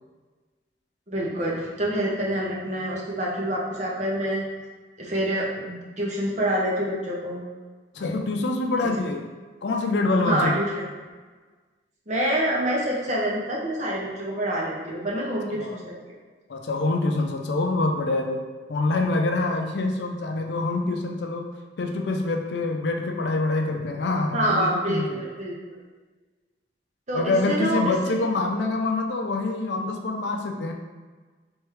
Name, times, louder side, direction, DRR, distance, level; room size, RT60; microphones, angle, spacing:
voice 1, 1.1-4.5 5.0-7.4 10.2-10.9 12.1-15.9 24.3-25.6 27.1-28.2, right 1 dB, 40° right, -4 dB, 0.8 m, -26 dB
voice 2, 7.9-9.3 9.6-10.6 15.5-15.8 16.5-18.4 18.7-21.5 21.8-25.2 27.1-30.7, left 2 dB, 70° left, 3 dB, 0.4 m, -25 dB
3.5 x 3.3 x 3.1 m, 1.4 s
head